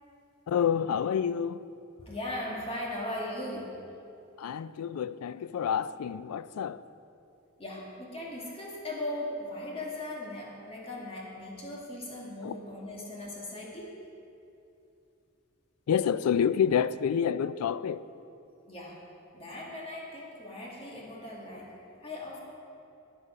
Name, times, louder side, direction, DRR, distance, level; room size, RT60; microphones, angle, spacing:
voice 1, 0.5-1.6 4.4-6.8 12.4-12.6 15.9-18.1, left 8 dB, 80° left, 0.3 m, -28 dB
voice 2, 2.0-3.8 7.6-13.9 18.7-19.0 19.3-21.7 22.0-22.4, left 1 dB, 25° left, 1.9 m, -38 dB
11.0 x 10.5 x 5.0 m
head